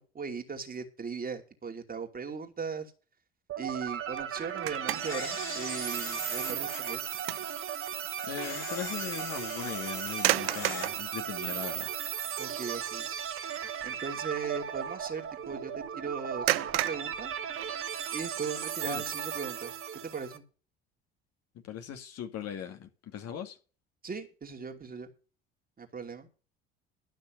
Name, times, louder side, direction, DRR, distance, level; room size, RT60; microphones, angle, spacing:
voice 1, 0.0-2.9 3.6-7.0 12.4-13.1 13.8-17.3 18.1-19.7 20.0-20.4 24.0-25.1 25.8-26.3, right 5 dB, 30° right, 2.5 m, -38 dB
sound 1, 3.5-20.4, right 9 dB, 45° right, 1.4 m, -36 dB
sound 2, 4.2-5.3 5.8-6.0 6.5-7.6 7.9-8.1 10.1-11.1 11.9-12.0 12.4-12.7 13.0-13.2 16.5-18.1, right 16 dB, 80° right, 0.5 m, -32 dB
Camera, 5.0-7.0 8.4-10.9, left 5 dB, 80° left, 2.9 m, -42 dB
voice 2, 8.2-11.9 18.9-19.0 21.6-23.6, left 9 dB, 55° left, 2.5 m, -39 dB
12.5 x 6.2 x 7.7 m
hypercardioid pair, 60°, 30 cm